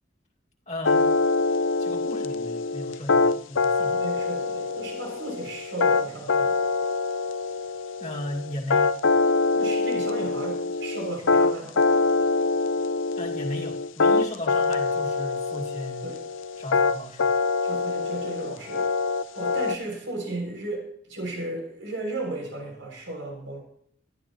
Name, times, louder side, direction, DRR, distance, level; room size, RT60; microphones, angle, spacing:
voice 1, 0.7-1.2 1.8-4.0 8.0-9.0 13.2-16.0 16.6-17.4, left 1 dB, 35° left, -1 dB, 2.2 m, -36 dB
sound 1, 0.8-19.8, left 3 dB, 85° left, 0.6 m, -24 dB
voice 2, 3.9-6.5 9.5-11.8 16.0-16.2 17.6-18.9 19.3-23.6, right 2 dB, 75° right, 0 dB, 6.7 m, -35 dB
20.5 x 13.5 x 3.1 m, 0.64 s
head